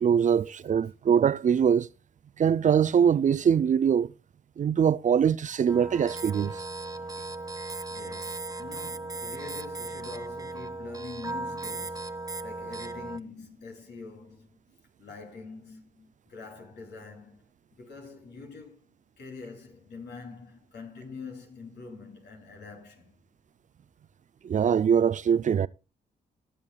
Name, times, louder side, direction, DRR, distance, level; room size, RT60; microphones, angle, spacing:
voice 1, 0.0-1.9 2.4-4.1 4.6-6.6 24.4-25.7, right 7 dB, 45° right, 0.4 m, -23 dB
sound 1, 5.7-13.2, right 3 dB, 20° right, 0.9 m, -37 dB
voice 2, 7.9-14.5 15.0-18.8 19.2-23.2, left 4 dB, 80° left, 3.0 m, -45 dB
19.5 x 7.3 x 2.3 m
supercardioid pair, 50°, 17 cm